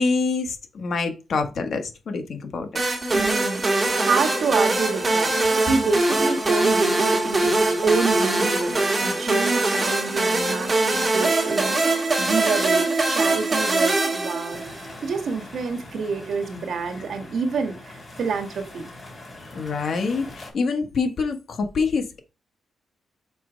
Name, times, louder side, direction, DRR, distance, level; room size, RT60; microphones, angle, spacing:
voice 1, 0.0-2.7 19.5-22.2, left 4 dB, 55° left, 1.4 m, -26 dB
sound 1, 2.8-14.9, right 2 dB, 25° right, 1.8 m, -22 dB
voice 2, 3.1-5.3 5.6-14.8 15.0-18.9, right 5 dB, 60° right, 1.4 m, -28 dB
sound 2, 14.5-20.5, left 2 dB, 25° left, 3.7 m, -42 dB
6.0 x 4.7 x 5.0 m
wide cardioid pair, 135°, 0 cm